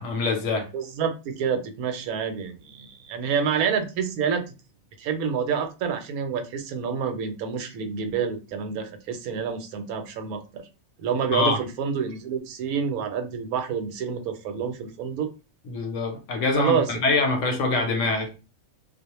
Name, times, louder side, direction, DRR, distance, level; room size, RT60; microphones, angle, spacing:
voice 1, 0.0-0.7 11.3-11.6 15.7-18.3, left 3 dB, 70° left, 0.9 m, -24 dB
voice 2, 0.7-4.4 5.0-10.7 11.0-15.3 16.5-17.2, right 6 dB, 85° right, 1.0 m, -28 dB
2.4 x 2.0 x 2.9 m
omnidirectional pair, 1.5 m